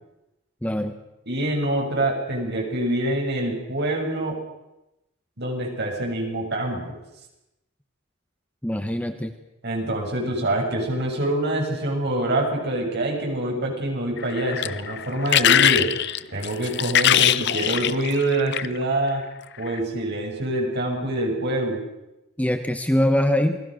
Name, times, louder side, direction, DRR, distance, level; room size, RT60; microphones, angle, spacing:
voice 1, 0.6-1.0 8.6-9.3 9.9-10.0 22.4-23.6, left 1 dB, 5° left, 7 dB, 1.2 m, -23 dB
voice 2, 1.3-4.4 5.4-6.9 9.6-15.9 16.3-19.2 19.6-21.8, right 1 dB, 55° right, 1 dB, 7.0 m, -25 dB
sound 1, 14.2-18.8 19.6-19.8, left 11 dB, 55° left, 0.8 m, -21 dB
28.5 x 20.5 x 6.5 m, 0.93 s
head